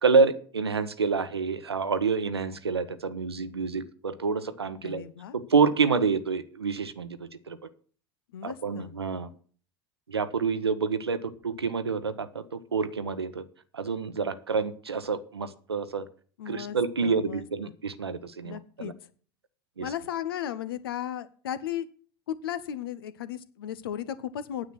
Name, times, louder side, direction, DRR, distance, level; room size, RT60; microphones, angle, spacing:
voice 1, 0.0-5.0 5.3-7.6 8.4-9.3 10.1-13.4 13.7-16.0 16.5-18.9 19.8-19.9, right 5 dB, 80° right, 13 dB, 0.9 m, -28 dB
voice 2, 4.8-5.4 8.3-8.9 16.4-17.4 18.4-18.9 19.8-21.9 22.3-24.7, left 10 dB, 65° left, 15 dB, 0.9 m, -35 dB
9.6 x 8.1 x 6.1 m, 0.43 s
figure-of-eight pair, 75°, 13 cm